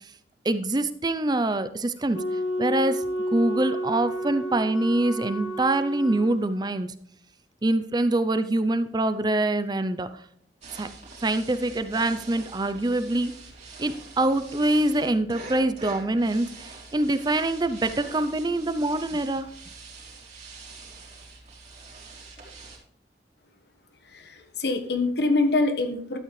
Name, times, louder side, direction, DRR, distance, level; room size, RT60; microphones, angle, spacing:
voice 1, 0.4-2.2 2.6-3.0 3.3-6.9 7.6-10.1 10.7-10.9 11.2-13.3 13.8-19.5, right 2 dB, 25° right, 12 dB, 0.5 m, -25 dB
Wind instrument woodwind instrument, 2.1-6.4, equal, 85° left, 1.9 m, -30 dB
sound 1, 10.6-22.8, right 3 dB, 40° right, 3.4 m, -45 dB
voice 2, 24.1-26.2, left 2 dB, 65° left, 7 dB, 1.4 m, -25 dB
12.5 x 8.5 x 3.2 m, 0.65 s
head